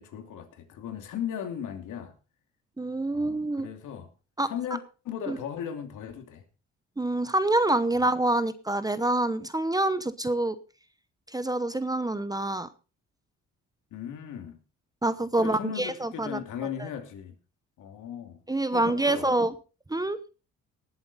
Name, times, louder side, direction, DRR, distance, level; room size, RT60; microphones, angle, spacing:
voice 1, 0.0-2.2 3.1-4.1 4.4-6.5 13.9-14.6 15.4-17.4 17.8-18.4 18.7-19.4, left 9 dB, 80° left, 2.6 m, -37 dB
voice 2, 2.8-3.7 4.4-4.5 5.3-5.4 7.0-10.6 11.3-12.7 15.0-16.4 18.5-19.5 19.9-20.2, right 2 dB, 10° right, 0.9 m, -26 dB
19.0 x 7.7 x 4.1 m
cardioid pair, 90°, 30 cm